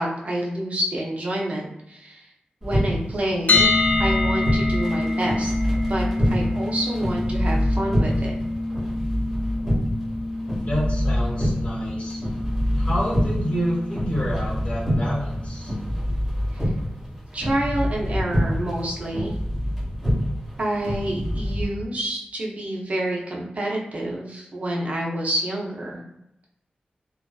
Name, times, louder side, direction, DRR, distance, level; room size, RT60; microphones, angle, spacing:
voice 1, 0.0-2.3 2.6-5.5 5.9-8.3 16.5-16.6 17.3-19.4 20.6-26.0, right 1 dB, 50° right, -2 dB, 0.6 m, -28 dB
sound 1, 2.6-21.7, equal, 5° right, 1.3 m, -26 dB
sound 2, 3.5-15.4, left 2 dB, 60° left, 0.4 m, -27 dB
voice 2, 10.6-12.2 12.7-15.7, equal, 40° left, -7 dB, 1.1 m, -28 dB
2.4 x 2.3 x 2.3 m, 0.81 s
wide cardioid pair, 125°, 3 cm